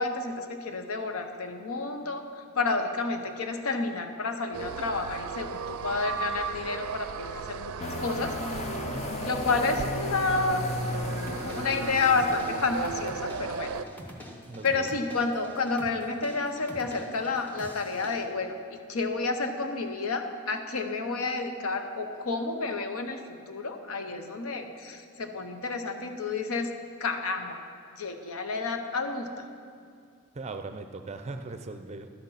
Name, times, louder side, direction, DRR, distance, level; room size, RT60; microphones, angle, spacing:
voice 1, 0.0-2.3 2.5-7.7 8.0-8.3 9.2-10.6 11.2-13.7 14.6-23.2 23.5-26.7 27.0-27.6 28.0-29.5, left 3 dB, 85° left, 6 dB, 0.8 m, -30 dB
sound 1, 4.5-13.8, right 6 dB, 85° right, 0.4 m, -36 dB
sound 2, 7.8-13.3, left 2 dB, 30° left, 0.4 m, -35 dB
voice 2, 8.9-9.4 14.5-15.0 30.3-32.1, right 3 dB, 30° right, 8 dB, 0.4 m, -39 dB
sound 3, 11.0-18.3, equal, 10° left, 0.8 m, -46 dB
12.0 x 6.5 x 5.6 m, 2.2 s
head